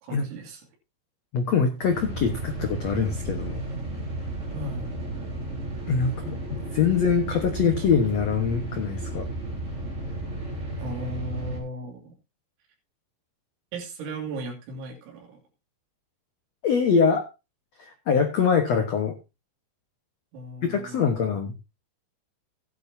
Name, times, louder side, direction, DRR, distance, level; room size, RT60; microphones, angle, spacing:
voice 1, 0.0-0.6 4.5-5.0 10.8-12.2 13.7-15.4 20.3-21.2, right 1 dB, 80° right, 0 dB, 5.3 m, -37 dB
voice 2, 1.3-3.6 5.9-9.3 16.6-17.3 17.8-19.2 20.6-21.5, left 6 dB, 85° left, 6 dB, 1.4 m, -24 dB
sound 1, 1.8-11.6, right 2 dB, 15° right, 3.5 m, -33 dB
16.5 x 10.5 x 2.8 m, 0.27 s
omnidirectional pair, 5.3 m